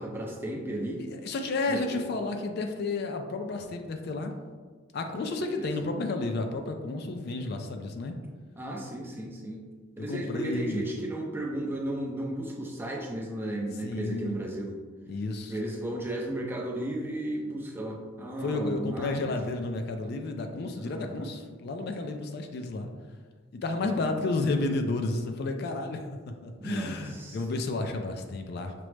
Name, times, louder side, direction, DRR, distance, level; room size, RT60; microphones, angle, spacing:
voice 1, 0.0-1.0 1.7-2.0 5.2-5.9 8.6-9.6 10.0-14.7 15.5-19.4 20.7-21.3 23.8-24.0 26.6-27.4, right 1 dB, 10° right, -1 dB, 0.5 m, -34 dB
voice 2, 1.0-4.4 4.9-8.2 10.0-10.8 13.8-14.4 15.1-15.5 18.4-22.9 23.5-28.7, left 3 dB, 55° left, 5 dB, 0.3 m, -32 dB
5.9 x 2.0 x 3.2 m, 1.5 s
head